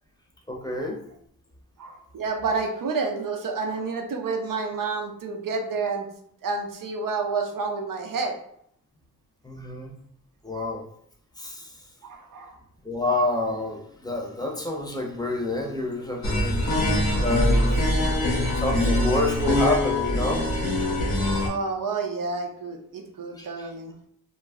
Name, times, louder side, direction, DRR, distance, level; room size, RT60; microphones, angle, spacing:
voice 1, 0.5-1.0 9.4-9.9 10.4-10.8 11.4-11.7 12.8-16.8 17.2-17.7 18.5-20.4 23.4-23.7, left 2 dB, 10° left, 0 dB, 0.7 m, -28 dB
voice 2, 1.8-6.1 6.4-8.4 12.0-12.6 16.8-17.3 17.6-17.7 21.4-24.0, right 4 dB, 60° right, 3 dB, 0.6 m, -29 dB
sound 1, 16.2-21.5, left 1 dB, 90° left, 0.9 m, -23 dB
2.3 x 2.0 x 3.5 m, 0.69 s
cardioid pair, 45°, 37 cm